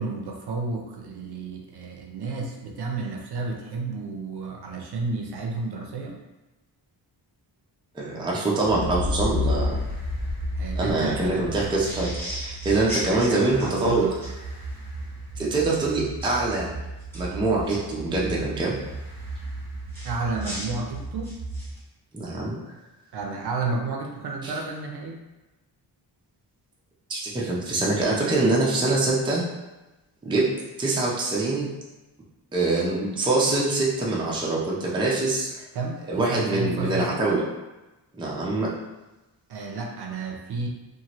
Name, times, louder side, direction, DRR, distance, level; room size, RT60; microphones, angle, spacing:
voice 1, 0.0-6.2 10.5-11.6 13.0-14.1 20.0-21.3 23.1-25.2 35.7-37.4 39.5-40.7, right 3 dB, 65° right, 1 dB, 0.5 m, -31 dB
voice 2, 7.9-9.8 10.8-12.1 12.4-14.0 15.4-16.7 17.1-18.8 22.1-22.6 24.4-24.5 27.1-29.4 30.2-31.7 32.5-35.5 36.1-37.4 38.1-38.8, right 2 dB, 10° right, -5 dB, 0.4 m, -24 dB
sound 1, 8.6-21.7, right 3 dB, 30° right, 0.8 m, -37 dB
sound 2, 8.8-12.7, left 3 dB, 65° left, 1.2 m, -29 dB
sound 3, 11.8-14.3 16.2-16.4 17.0-17.8 19.9-21.8, equal, 5° left, 1.0 m, -37 dB
2.7 x 2.5 x 2.9 m, 1.0 s
wide cardioid pair, 165°, 43 cm